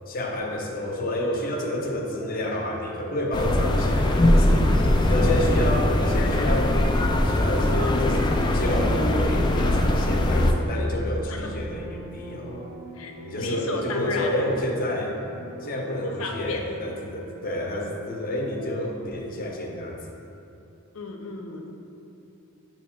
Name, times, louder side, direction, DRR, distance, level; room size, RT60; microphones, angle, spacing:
voice 1, 0.1-4.7 5.1-6.7 7.2-12.6 13.2-15.2 15.6-20.0, left 1 dB, 45° left, 1 dB, 0.7 m, -29 dB
sound 1, 0.9-19.2, right 1 dB, 50° right, 1.0 m, -42 dB
sound 2, 3.3-10.5, left 1 dB, 20° left, 0.3 m, -21 dB
voice 2, 5.1-5.4 11.3-11.5 12.9-14.5 16.0-16.6 20.9-21.7, left 3 dB, 80° left, 2 dB, 0.7 m, -33 dB
8.4 x 3.0 x 4.3 m, 2.8 s
head